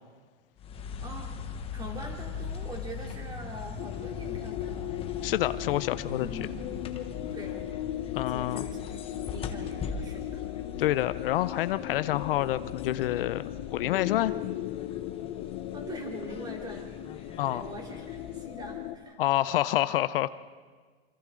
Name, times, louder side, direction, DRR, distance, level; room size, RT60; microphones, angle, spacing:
sound 1, 0.6-19.0, left 6 dB, 20° left, 1.2 m, -41 dB
voice 1, 1.0-4.9 6.2-6.6 7.3-7.7 8.1-10.7 15.7-16.9 17.2-19.2, equal, 15° right, 1 dB, 3.1 m, -43 dB
sound 2, 3.8-19.0, left 14 dB, 50° left, 1.0 m, -37 dB
voice 2, 5.2-6.3 8.1-8.6 10.8-13.4 13.7-14.3 17.4-17.7 19.2-20.3, left 14 dB, 65° left, 14 dB, 0.7 m, -27 dB
27.5 x 25.5 x 3.8 m, 1.5 s
supercardioid pair, 150°, 30 cm